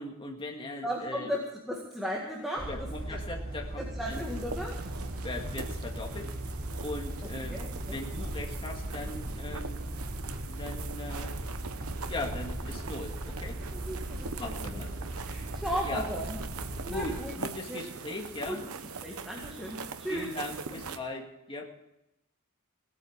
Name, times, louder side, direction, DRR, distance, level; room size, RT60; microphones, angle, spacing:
voice 1, 0.0-1.3 2.7-4.3 5.2-6.3 6.8-9.9 10.5-11.5 12.1-13.6 14.4-15.1 15.8-16.0 16.9-18.6 20.0-21.7, left 2 dB, 25° left, 1 dB, 2.0 m, -39 dB
voice 2, 0.8-3.2 3.8-4.8 7.5-8.0 13.7-14.8 15.3-16.4 16.8-17.3 17.7-17.8 18.5-18.6 19.0-20.3 20.7-20.8, equal, ahead, -3 dB, 1.9 m, -36 dB
sound 1, 2.6-17.2, right 1 dB, 45° right, 1.7 m, -38 dB
sound 2, 4.1-21.0, right 5 dB, 90° right, 1.0 m, -42 dB
17.5 x 8.8 x 7.2 m, 0.89 s
head